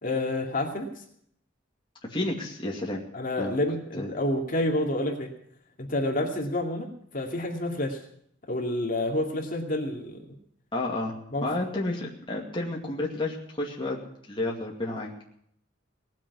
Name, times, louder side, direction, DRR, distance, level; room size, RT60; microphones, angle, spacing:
voice 1, 0.0-0.9 3.1-5.3 5.8-8.0 8.5-10.2 11.3-11.5, left 1 dB, 45° left, 1 dB, 2.5 m, -29 dB
voice 2, 2.0-3.0 3.4-3.6 4.0-4.1 10.7-11.1 11.4-14.0 14.3-15.1, left 2 dB, 25° left, -3 dB, 2.4 m, -31 dB
19.0 x 7.4 x 9.5 m, 0.69 s
head